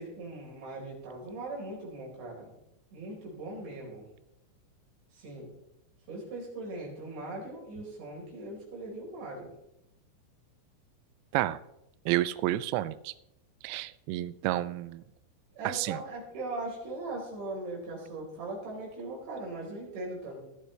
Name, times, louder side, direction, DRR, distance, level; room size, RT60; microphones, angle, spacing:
voice 1, 0.0-2.5 2.9-4.0 5.1-5.5 6.1-9.5 15.6-20.4, right 2 dB, 65° right, -3 dB, 6.5 m, -39 dB
voice 2, 12.1-13.1 13.6-15.0 15.6-16.0, right 15 dB, 85° right, 15 dB, 2.5 m, -30 dB
17.0 x 12.0 x 3.3 m, 0.85 s
omnidirectional pair, 5.5 m